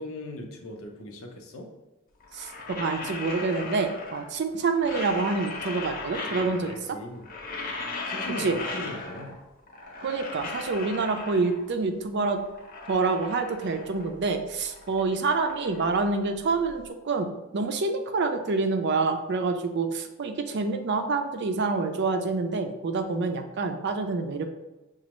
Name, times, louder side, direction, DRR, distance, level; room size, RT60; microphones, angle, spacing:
voice 1, 0.0-1.7 6.5-7.3 8.1-9.4, left 1 dB, 90° left, 2 dB, 0.8 m, -39 dB
sound 1, 2.2-4.4 4.7-6.9 7.1-9.4 9.7-11.7 12.2-14.2 14.5-16.7, left 3 dB, 45° left, 0.8 m, -37 dB
voice 2, 2.3-7.0 8.4-8.6 10.0-12.4 12.9-24.4, right 4 dB, 55° right, 7 dB, 0.5 m, -27 dB
6.0 x 2.4 x 3.0 m, 1.1 s
head